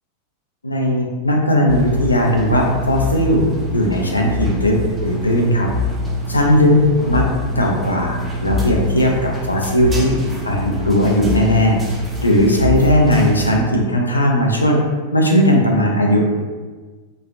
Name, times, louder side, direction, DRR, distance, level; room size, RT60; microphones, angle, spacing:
voice 1, 0.6-3.4 3.7-4.8 5.0-5.7 6.3-6.8 7.1-7.2 7.6-10.1 10.4-11.8 12.2-14.8 15.1-16.3, equal, 80° left, 0 dB, 0.4 m, -17 dB
sound 1, 1.7-13.6, left 1 dB, 15° right, 0.5 m, -25 dB
2.9 x 2.4 x 2.5 m, 1.4 s
figure-of-eight pair, 90°, 0 cm